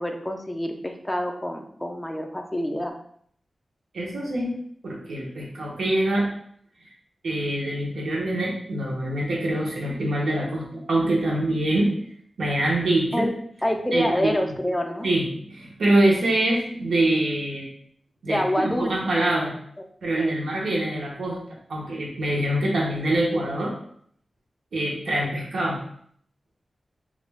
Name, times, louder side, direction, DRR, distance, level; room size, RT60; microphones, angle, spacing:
voice 1, 0.0-2.9 13.1-13.3 13.6-15.1 18.3-18.9 20.1-20.3, left 1 dB, 10° left, 2 dB, 0.3 m, -27 dB
voice 2, 3.9-4.5 4.8-6.3 6.8-6.9 7.2-11.9 12.4-13.3 13.9-14.3 15.0-17.7 18.2-19.6 20.0-21.4 21.7-23.7 24.7-25.8, right 1 dB, 85° right, -3 dB, 0.8 m, -24 dB
2.4 x 2.2 x 3.2 m, 0.63 s
wide cardioid pair, 130°, 0 cm